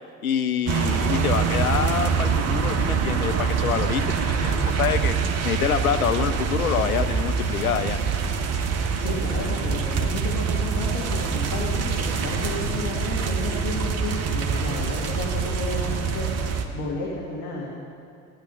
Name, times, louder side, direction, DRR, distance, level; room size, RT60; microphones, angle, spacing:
voice 1, 0.2-5.1 5.4-8.0, left 8 dB, 75° left, 9 dB, 0.7 m, -26 dB
sound 1, 0.7-16.6, right 5 dB, 35° right, 1.2 m, -25 dB
voice 2, 8.9-16.3 16.7-17.7, left 3 dB, 45° left, -4 dB, 2.4 m, -32 dB
15.0 x 9.8 x 6.3 m, 2.3 s
figure-of-eight pair, 65°, 43 cm